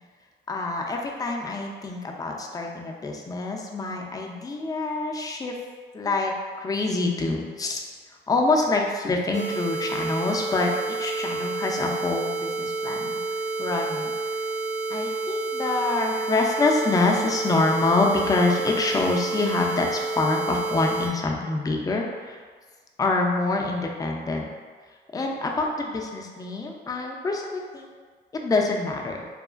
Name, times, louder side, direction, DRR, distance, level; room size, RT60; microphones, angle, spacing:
voice 1, 0.5-5.5 5.9-7.8 8.3-13.2 13.6-14.4 14.9-22.4 23.0-24.5 25.1-28.0 28.3-29.2, left 3 dB, 20° left, 1 dB, 0.3 m, -26 dB
sound 1, 9.3-21.1, right 3 dB, 60° right, 0.5 m, -30 dB
2.9 x 2.4 x 2.3 m, 1.5 s
cardioid pair, 90°, 20 cm